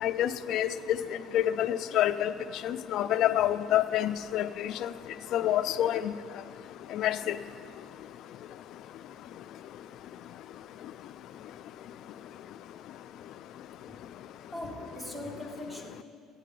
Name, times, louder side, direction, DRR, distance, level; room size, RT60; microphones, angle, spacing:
voice 1, 0.0-1.0 1.3-2.3 2.6-4.9 5.3-6.0 6.9-7.2, left 12 dB, 65° left, 13 dB, 0.3 m, -27 dB
voice 2, 14.5-16.0, left 1 dB, 10° right, 0 dB, 1.8 m, -40 dB
15.0 x 9.2 x 5.3 m, 2.5 s
cardioid pair, 115°, 0 cm